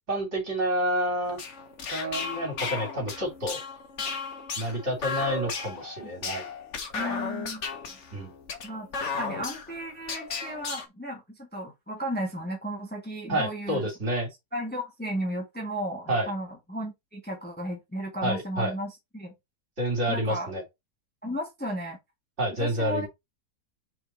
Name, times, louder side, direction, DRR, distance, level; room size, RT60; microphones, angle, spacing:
voice 1, 0.1-1.4 1.9-3.6 4.6-6.5 7.0-7.2 8.1-8.3 13.3-14.3 16.1-16.3 18.2-18.7 19.8-20.6 22.4-23.1, right 1 dB, 45° right, 3.8 m, -29 dB
sound 1, 1.3-10.9, left 4 dB, 50° left, 1.4 m, -35 dB
voice 2, 6.9-7.6 8.6-13.9 14.5-19.3 20.1-20.5 21.2-22.0 22.6-23.1, equal, 5° left, 1.5 m, -34 dB
5.0 x 4.8 x 4.5 m
omnidirectional pair, 1.7 m